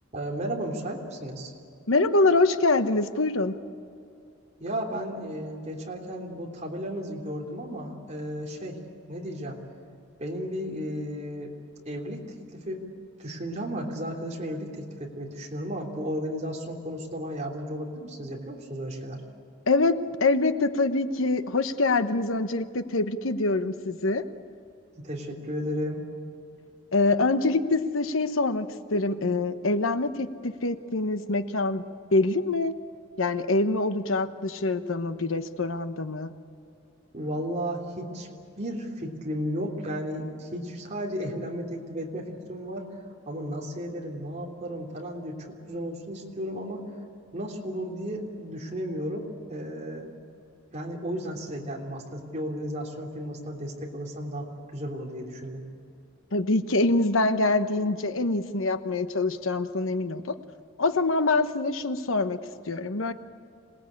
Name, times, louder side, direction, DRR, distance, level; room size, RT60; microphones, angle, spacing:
voice 1, 0.1-1.5 4.6-8.8 9.1-9.6 10.2-11.5 11.8-12.2 12.5-12.8 13.2-19.2 24.9-26.0 37.1-38.3 38.6-43.0 43.2-46.8 47.3-50.1 50.7-55.6, equal, 35° right, -1 dB, 3.2 m, -34 dB
voice 2, 1.9-3.6 19.7-24.2 26.9-31.8 32.1-32.7 33.2-36.3 56.3-60.3 60.8-62.4 62.7-63.1, left 2 dB, 85° left, 10 dB, 1.1 m, -25 dB
26.5 x 18.5 x 8.6 m, 2.5 s
head